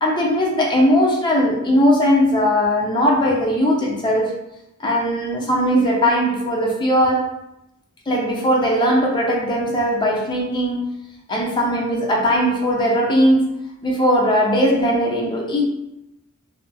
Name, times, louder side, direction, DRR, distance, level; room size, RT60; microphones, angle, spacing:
voice 1, 0.0-4.3 4.8-7.3 8.1-10.9 11.3-13.5 13.8-15.6, equal, 20° left, -1 dB, 0.4 m, -19 dB
2.7 x 2.4 x 2.2 m, 0.87 s
head